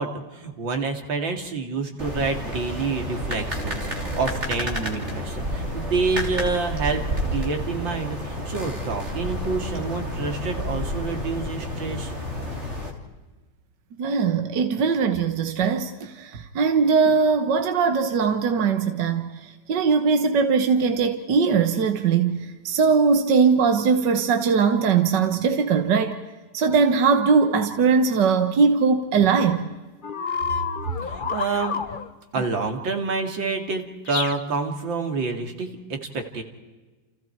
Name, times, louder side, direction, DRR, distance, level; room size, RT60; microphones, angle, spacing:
voice 1, 0.0-12.1 31.0-31.8 32.3-36.4, right 4 dB, 90° right, 3.1 m, -28 dB
sound 1, 2.0-12.9, equal, 35° right, 3.5 m, -30 dB
voice 2, 14.0-26.2 26.5-29.7, right 5 dB, 70° right, 1.9 m, -20 dB
sound 2, 30.0-32.1 34.1-34.4, left 6 dB, 40° left, 0.7 m, -29 dB
29.5 x 29.5 x 4.6 m
omnidirectional pair, 2.0 m